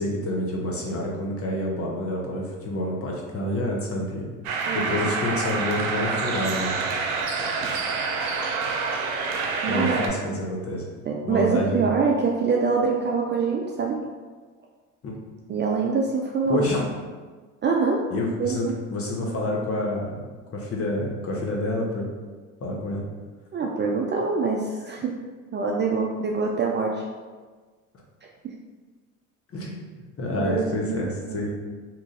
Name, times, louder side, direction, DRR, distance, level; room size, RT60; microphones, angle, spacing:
voice 1, 0.0-4.3 4.7-6.8 7.6-7.8 9.7-10.9 11.2-11.9 15.0-15.1 16.4-16.8 18.1-20.3 20.5-22.1 22.6-23.1 29.5-31.5, left 1 dB, 35° left, -2 dB, 1.0 m, -28 dB
sound 1, 4.4-10.1, right 4 dB, 85° right, 0.6 m, -27 dB
voice 2, 4.7-5.1 9.6-10.0 11.1-14.0 15.5-16.9 17.6-18.0 18.4-18.7 23.5-25.1 25.5-27.0 30.4-31.4, right 4 dB, 30° right, -1 dB, 0.4 m, -25 dB
2.9 x 2.6 x 3.7 m, 1.4 s
hypercardioid pair, 70°, 40 cm